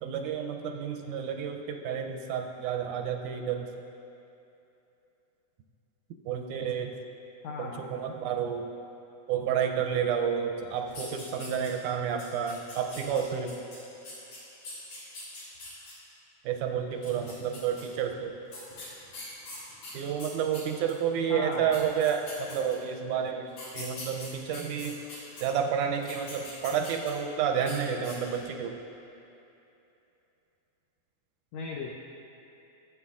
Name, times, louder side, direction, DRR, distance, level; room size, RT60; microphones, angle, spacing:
voice 1, 0.0-3.7 6.3-6.9 7.6-8.7 9.3-13.6 16.5-18.3 19.9-23.5 23.7-25.0 25.4-28.8, right 8 dB, 80° right, 3 dB, 2.0 m, -30 dB
voice 2, 7.4-8.1 17.4-17.6 21.3-21.8 31.5-32.0, left 4 dB, 85° left, 0 dB, 1.4 m, -38 dB
sound 1, 10.9-11.9 12.2-15.9 16.9-17.8 18.5-21.0 21.5-21.6 21.7-22.9 23.5-25.4 25.9-27.3 27.6-27.8 28.0-28.5, left 2 dB, 70° left, 4.0 m, -43 dB
15.5 x 8.1 x 2.4 m, 2.9 s
omnidirectional pair, 3.7 m